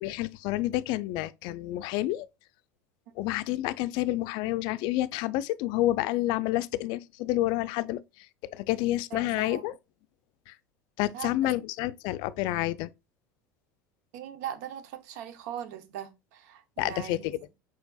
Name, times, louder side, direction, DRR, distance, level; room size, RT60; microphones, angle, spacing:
voice 1, 0.0-2.3 3.2-8.0 8.5-9.7 10.5-10.6 11.0-12.9 16.8-17.4, left 16 dB, 55° left, 0.4 m, -29 dB
voice 2, 9.1-9.7 11.1-11.5 14.1-17.4, right 10 dB, 65° right, 0.7 m, -40 dB
4.7 x 4.4 x 2.2 m
hypercardioid pair, 80°, 9 cm